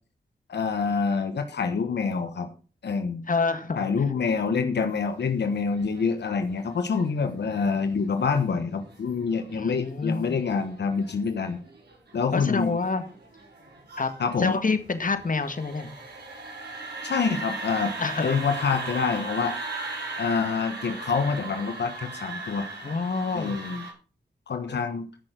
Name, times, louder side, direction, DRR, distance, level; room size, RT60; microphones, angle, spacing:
voice 1, 0.5-2.5 2.8-3.2 3.7-11.6 12.1-12.8 14.2-14.6 17.0-17.9 18.2-19.5 20.2-22.7 23.3-23.8 24.5-25.1, left 5 dB, 85° left, 7 dB, 1.3 m, -26 dB
voice 2, 3.3-3.9 9.5-10.5 12.3-13.0 14.0-14.1 14.4-15.9 18.0-18.4 22.8-23.6 24.7-24.8, left 4 dB, 50° left, 10 dB, 1.8 m, -27 dB
sound 1, 5.0-23.9, right 3 dB, 75° right, 6.1 m, -39 dB
14.0 x 6.5 x 6.1 m, 0.38 s
cardioid pair, 50°, 17 cm